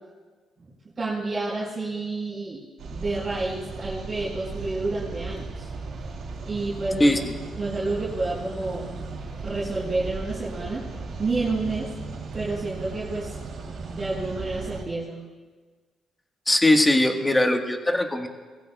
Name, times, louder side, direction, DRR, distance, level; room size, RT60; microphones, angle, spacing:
voice 1, 1.0-2.6 2.9-5.7 6.4-7.2 7.6-8.9 9.4-10.9 11.2-11.9 12.3-13.4 13.9-15.3, right 3 dB, 35° right, -9 dB, 4.4 m, -29 dB
sound 1, 2.8-14.8, right 4 dB, 70° right, 3.0 m, -36 dB
voice 2, 16.5-18.3, left 1 dB, 15° left, 4 dB, 1.4 m, -20 dB
20.5 x 16.0 x 2.3 m, 1.4 s
cardioid pair, 90°, 0 cm